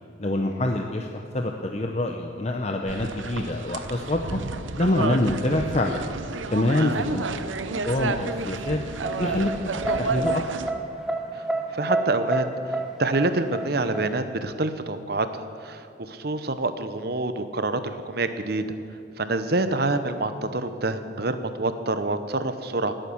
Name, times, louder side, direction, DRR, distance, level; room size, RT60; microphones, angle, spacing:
voice 1, 0.2-4.4 4.8-6.0 6.5-7.3 7.7-8.8 9.2-9.5 10.0-10.4, left 1 dB, 35° left, 3 dB, 0.7 m, -25 dB
sound 1, 2.9-10.7, right 3 dB, 85° right, 0.8 m, -31 dB
sound 2, 8.3-14.1, right 2 dB, 5° right, 1.1 m, -29 dB
voice 2, 11.7-18.6 19.2-22.9, right 2 dB, 55° right, 10 dB, 0.9 m, -27 dB
19.0 x 9.0 x 7.2 m, 2.6 s
head